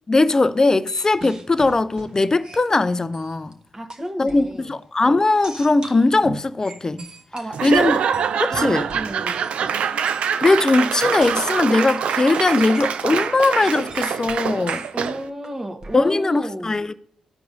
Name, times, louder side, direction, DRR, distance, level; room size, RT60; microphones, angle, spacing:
voice 1, 0.1-3.5 4.2-7.0 7.6-8.0 8.4-8.9 10.4-14.9 15.9-16.9, left 3 dB, 30° left, 0.4 m, -19 dB
sound 1, 0.9-3.5 3.9-4.5 5.4-9.8 10.1-10.3 10.8-12.0 12.4-16.1, right 2 dB, 40° right, 1.2 m, -40 dB
voice 2, 3.7-4.7 7.3-7.8 8.5-9.4 14.9-16.8, right 1 dB, 20° right, 1.2 m, -32 dB
Laughter / Applause / Crowd, 7.5-15.3, right 7 dB, 70° right, 0.4 m, -24 dB
13.5 x 4.7 x 2.6 m
supercardioid pair, 50°, 2 cm